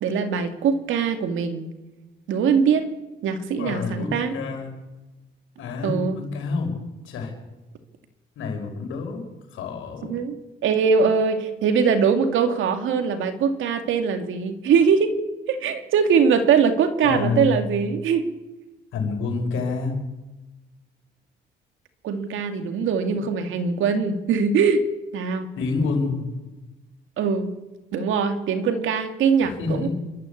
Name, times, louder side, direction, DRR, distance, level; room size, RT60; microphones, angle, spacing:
voice 1, 0.0-1.7 2.3-2.9 3.2-4.3 5.8-6.2 10.1-15.1 15.5-18.3 22.0-24.8 25.1-25.5 27.2-27.5 27.9-29.9, right 6 dB, 80° right, 8 dB, 2.3 m, -22 dB
voice 2, 3.6-4.7 5.6-6.7 7.0-7.3 8.4-10.1 17.0-17.5 18.9-19.9 25.6-26.2 29.6-29.9, left 4 dB, 85° left, 3 dB, 5.9 m, -28 dB
28.0 x 13.0 x 8.5 m, 1.1 s
cardioid pair, 90°, 20 cm